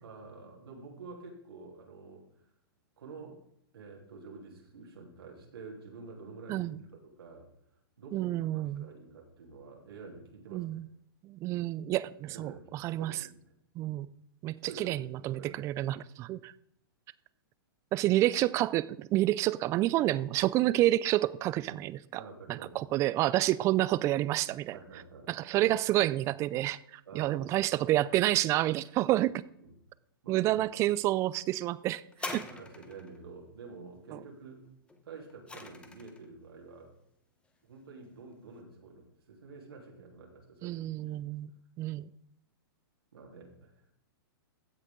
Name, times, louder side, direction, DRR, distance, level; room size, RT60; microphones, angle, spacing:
voice 1, 0.0-2.3 3.0-3.4 3.7-7.5 8.0-10.8 12.3-13.5 14.7-15.0 15.3-15.7 22.1-23.0 24.7-25.7 27.0-27.4 29.0-29.2 29.6-29.7 30.2-30.6 32.5-34.7 35.0-36.9 37.6-41.2 43.1-43.7, right 4 dB, 85° right, 3.3 m, -49 dB
voice 2, 6.5-6.8 8.1-8.9 10.5-10.8 11.2-13.2 13.8-14.1 14.4-16.5 17.9-22.2 22.5-24.8 25.3-29.3 30.3-32.0 32.3-32.4 34.1-34.2 40.6-41.5 41.8-42.1, right 15 dB, 25° right, 0.4 m, -29 dB
sound 1, 32.1-33.2 34.9-36.3 37.1-37.2, left 3 dB, 10° left, 1.0 m, -42 dB
15.5 x 6.4 x 3.8 m
hypercardioid pair, 140°, 12 cm